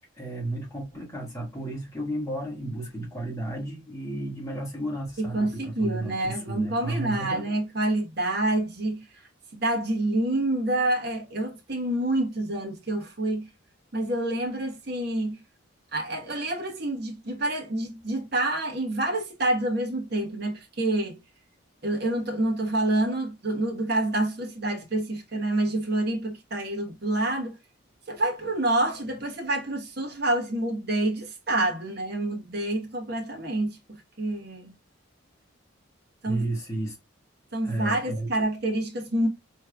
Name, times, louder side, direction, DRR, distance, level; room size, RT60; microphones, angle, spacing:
voice 1, 0.2-7.5 36.2-37.0 37.6-38.3, right 1 dB, 15° left, 1.5 m, -33 dB
voice 2, 5.2-9.2 9.5-13.5 13.9-15.4 15.9-21.2 21.8-27.6 28.1-34.7 36.2-36.4 37.5-39.3, right 1 dB, 50° right, 1.2 m, -27 dB
3.5 x 3.2 x 2.3 m
head